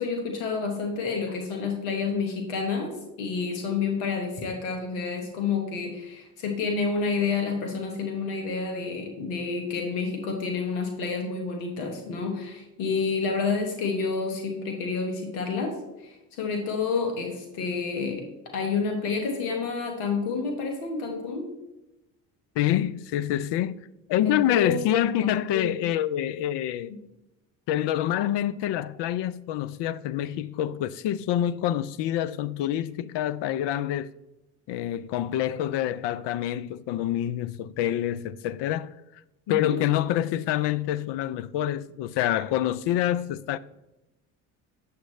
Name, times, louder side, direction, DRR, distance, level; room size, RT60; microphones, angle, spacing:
voice 1, 0.0-18.3 18.5-21.5 24.2-25.7 39.5-39.8, left 4 dB, 80° left, 1.3 m, -29 dB
voice 2, 22.6-26.9 27.7-34.1 34.7-38.9 39.5-43.6, left 12 dB, 60° left, 0.5 m, -27 dB
8.2 x 7.4 x 3.2 m
hypercardioid pair, 60°, 47 cm